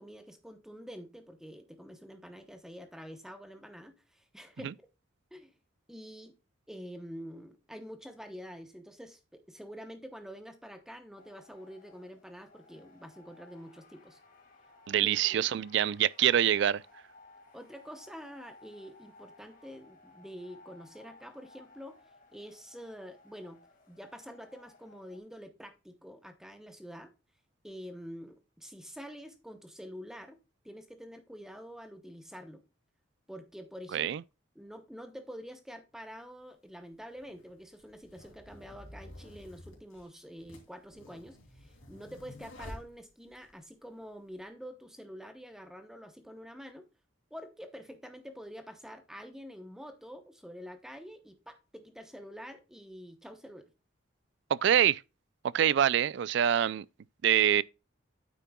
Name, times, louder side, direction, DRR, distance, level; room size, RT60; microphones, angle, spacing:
voice 1, 0.0-4.7 5.3-5.5 5.9-6.3 6.7-14.2 15.0-15.5 17.5-22.0 22.3-23.6 23.9-27.1 27.6-30.4 30.6-32.6 33.3-34.1 34.5-46.9 47.3-53.7, equal, 5° right, 0.8 m, -47 dB
sound 1, 11.2-25.2, left 3 dB, 45° left, 1.9 m, -59 dB
voice 2, 14.9-16.8 33.9-34.2 54.5-55.0 55.5-56.8 57.2-57.6, right 10 dB, 60° right, 0.3 m, -25 dB
sound 2, 36.1-36.2 37.1-43.5, left 1 dB, 80° left, 2.9 m, -50 dB
9.0 x 8.3 x 2.3 m
head